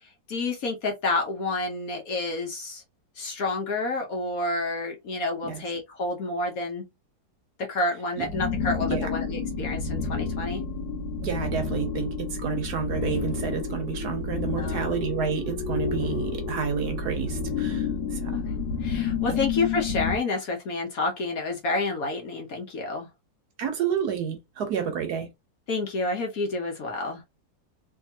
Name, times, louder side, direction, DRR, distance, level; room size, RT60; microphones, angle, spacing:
voice 1, 0.0-2.8 3.2-6.9 7.6-10.6 14.6-14.9 18.3-18.4 18.8-23.1 24.7-24.9 25.7-27.2, left 3 dB, 60° left, 1.1 m, -29 dB
sound 1, 8.2-20.2, left 5 dB, 75° left, 1.7 m, -30 dB
voice 2, 11.2-18.4 19.3-19.4 23.6-25.3, right 6 dB, 65° right, 1.3 m, -30 dB
3.5 x 2.7 x 2.7 m
omnidirectional pair, 2.0 m